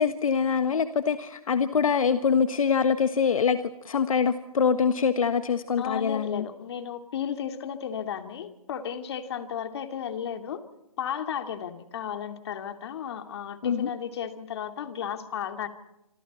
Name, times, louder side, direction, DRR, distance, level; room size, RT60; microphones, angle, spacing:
voice 1, 0.0-6.5 13.6-13.9, left 6 dB, 65° left, 10 dB, 1.4 m, -24 dB
voice 2, 5.8-10.6 11.0-15.7, left 8 dB, 45° left, 7 dB, 2.5 m, -34 dB
27.5 x 26.0 x 4.3 m, 0.89 s
hypercardioid pair, 155°, 19 cm